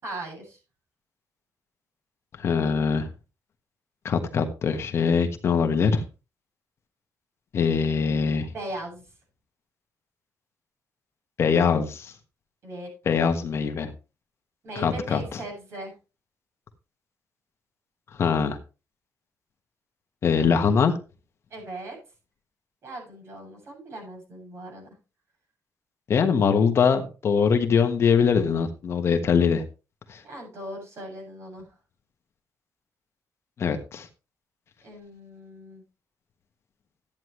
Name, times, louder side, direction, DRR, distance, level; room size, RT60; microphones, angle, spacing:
voice 1, 0.0-0.6 8.5-9.0 12.6-12.9 14.6-15.9 21.5-22.0 22.8-24.9 30.2-31.7 34.8-35.8, right 1 dB, 50° right, 1 dB, 7.9 m, -38 dB
voice 2, 2.4-3.1 4.0-6.0 7.5-8.5 11.4-12.1 13.0-13.9 14.7-15.4 18.2-18.6 20.2-20.9 26.1-29.6 30.1-30.2 33.6-34.1, left 6 dB, 45° left, 6 dB, 1.4 m, -22 dB
13.5 x 9.6 x 3.2 m, 0.31 s
cardioid pair, 160°, 6 cm